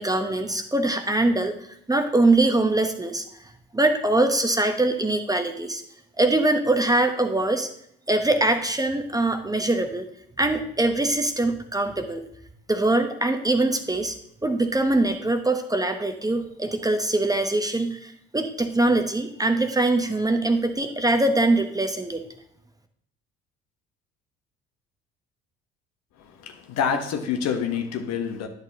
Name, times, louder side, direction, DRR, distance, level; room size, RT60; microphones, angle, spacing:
voice 1, 0.0-1.5 1.9-3.2 3.7-5.8 6.2-7.7 8.1-10.1 10.4-12.2 12.7-14.1 14.4-22.2, right 2 dB, 10° right, 6 dB, 1.0 m, -23 dB
voice 2, 26.2-28.5, left 7 dB, 60° left, 5 dB, 1.1 m, -27 dB
10.5 x 6.6 x 2.8 m, 0.71 s
hypercardioid pair, 55°, 30 cm